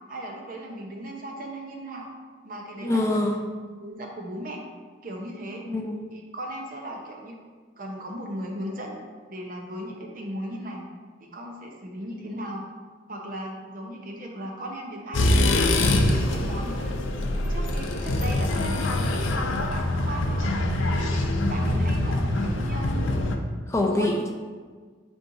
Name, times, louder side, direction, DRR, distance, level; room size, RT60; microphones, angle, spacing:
voice 1, 0.1-2.1 2.4-3.3 3.8-4.6 5.0-5.6 6.1-7.3 7.8-8.9 9.3-10.9 11.2-12.6 13.1-15.3 15.8-16.9 17.5-18.9 19.3-20.5 20.9-23.1 23.9-24.1, right 1 dB, 45° right, 0 dB, 0.9 m, -37 dB
voice 2, 2.8-3.4 5.7-6.0 12.1-12.4 21.7-21.9 23.7-24.3, left 1 dB, 15° left, 1 dB, 0.4 m, -26 dB
sound 1, 15.1-23.4, left 1 dB, 75° left, 0.6 m, -24 dB
8.4 x 4.5 x 2.7 m, 1.5 s
head